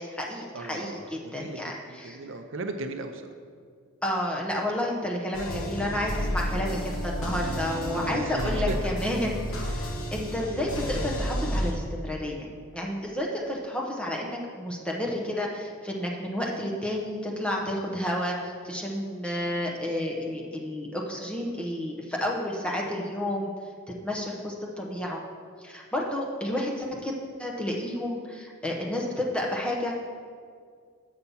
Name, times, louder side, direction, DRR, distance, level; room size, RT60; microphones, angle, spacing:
voice 1, 0.0-2.2 4.0-23.5 24.0-25.2 25.6-27.1 27.4-30.0, left 1 dB, 5° left, -2 dB, 0.8 m, -31 dB
voice 2, 0.5-1.6 1.9-3.2 6.4-6.8 7.9-8.8, right 2 dB, 65° right, 7 dB, 0.5 m, -36 dB
sound 1, 5.3-11.7, equal, 75° left, 1.0 m, -31 dB
7.1 x 5.7 x 5.5 m, 2.1 s
head